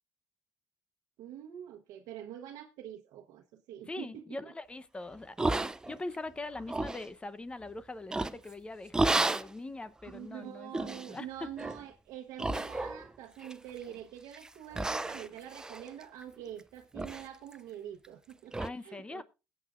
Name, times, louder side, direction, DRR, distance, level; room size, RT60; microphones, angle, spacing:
voice 1, 1.2-4.3 10.1-19.2, right 10 dB, 90° right, 1.0 m, -45 dB
voice 2, 3.9-9.0 9.2-11.5 18.6-19.2, left 2 dB, 15° left, 0.8 m, -42 dB
sound 1, 5.4-6.2 6.5-7.1 8.1-8.5 8.9-9.5 10.1-10.2 10.7-11.1 11.6-11.8 12.4-13.1 13.4-13.9 14.3-14.5 14.7-16.6 16.9-17.3 17.5-17.6 18.0-18.1 18.5-18.7, right 2 dB, 10° right, 0.5 m, -32 dB
21.0 x 8.4 x 2.5 m
cardioid pair, 110°, 6 cm